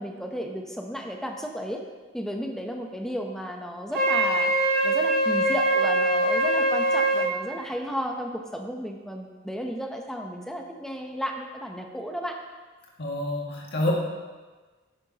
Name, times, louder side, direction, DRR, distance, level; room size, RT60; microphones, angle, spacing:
voice 1, 0.0-1.8 2.1-4.5 4.8-12.4, equal, ahead, 2 dB, 0.7 m, -33 dB
Wind instrument woodwind instrument, 3.9-7.3, right 1 dB, 50° right, 2.5 m, -23 dB
voice 2, 13.0-13.9, left 1 dB, 60° left, -3 dB, 2.0 m, -27 dB
10.5 x 9.4 x 2.9 m, 1.3 s
head